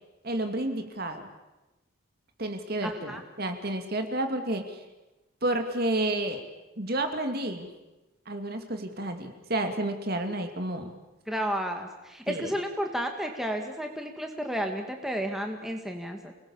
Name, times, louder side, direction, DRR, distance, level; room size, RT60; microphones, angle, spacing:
voice 1, 0.2-1.3 2.4-4.8 5.4-6.4 6.8-7.7 8.3-10.9 12.3-12.5, right 1 dB, 45° right, 6 dB, 2.5 m, -30 dB
voice 2, 2.8-3.2 11.3-16.3, equal, ahead, 3 dB, 2.1 m, -32 dB
28.5 x 20.5 x 7.2 m, 1.0 s
head